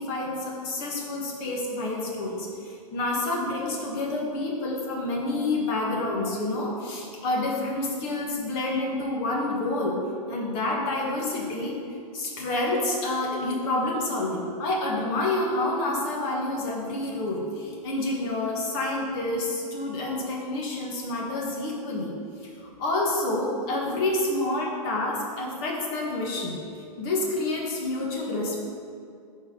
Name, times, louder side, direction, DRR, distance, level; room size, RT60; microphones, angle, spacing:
voice 1, 0.0-10.0 10.3-11.8 12.1-22.1 22.4-26.6 27.0-28.6, left 2 dB, 40° left, -2 dB, 1.7 m, -28 dB
11.5 x 4.4 x 3.9 m, 2.4 s
supercardioid pair, 155°, 20 cm